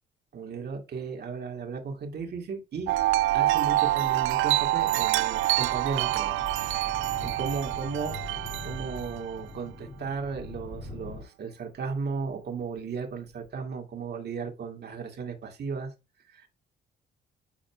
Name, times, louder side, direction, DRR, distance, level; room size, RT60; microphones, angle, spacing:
voice 1, 0.3-2.9 3.3-6.9 7.2-8.1 8.6-15.9 16.3-16.5, right 5 dB, 55° right, 2.2 m, -35 dB
Wind chime, 2.9-9.4, right 16 dB, 80° right, 0.4 m, -26 dB
Wind instrument woodwind instrument, 3.9-9.3, right 3 dB, 20° right, 2.2 m, -55 dB
sound 1, 4.5-11.2, left 2 dB, 40° left, 2.3 m, -42 dB
10.5 x 4.2 x 2.3 m
cardioid pair, 90°, 20 cm